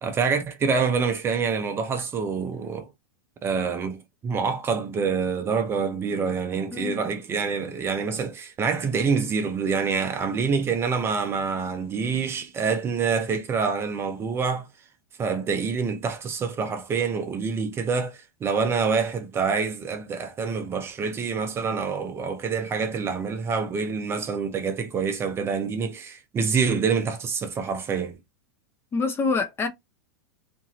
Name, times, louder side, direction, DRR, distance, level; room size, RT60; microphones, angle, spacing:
voice 1, 0.0-2.9 3.4-14.7 15.2-28.2, right 5 dB, 20° right, 0.6 m, -26 dB
voice 2, 28.9-29.7, left 4 dB, 20° left, 0.6 m, -25 dB
2.6 x 2.6 x 2.9 m
hypercardioid pair, 125°, 11 cm